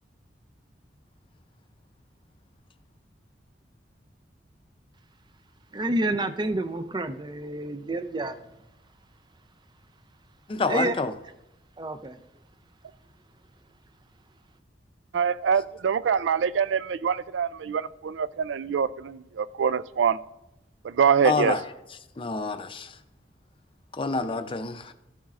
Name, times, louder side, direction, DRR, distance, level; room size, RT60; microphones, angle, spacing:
voice 1, 5.7-8.4 10.7-11.0 11.8-12.2, right 2 dB, 25° right, 10 dB, 0.5 m, -29 dB
voice 2, 10.5-11.1 21.2-21.6 22.2-23.0 23.9-24.9, left 4 dB, 30° left, 9 dB, 0.5 m, -27 dB
voice 3, 15.1-20.2 20.8-21.6, right 7 dB, 85° right, 17 dB, 0.4 m, -25 dB
14.0 x 7.2 x 2.5 m, 0.88 s
head